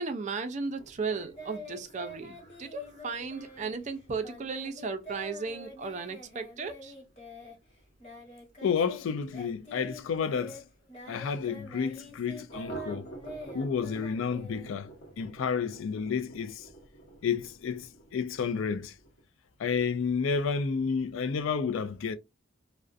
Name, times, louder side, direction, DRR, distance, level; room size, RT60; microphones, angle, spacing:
voice 1, 0.0-6.9, right 4 dB, 35° right, 0.4 m, -35 dB
sound 1, 0.7-10.0 10.3-10.4 10.7-10.8 11.2-11.3 12.5-19.2, right 1 dB, 55° left, 0.9 m, -50 dB
Singing, 1.1-9.0 9.3-15.2, equal, 35° left, 1.0 m, -46 dB
voice 2, 8.6-10.6 11.1-13.1 13.5-14.9 15.2-16.7 17.2-18.9 19.6-22.2, left 6 dB, 75° left, 0.4 m, -30 dB
2.4 x 2.1 x 2.4 m
head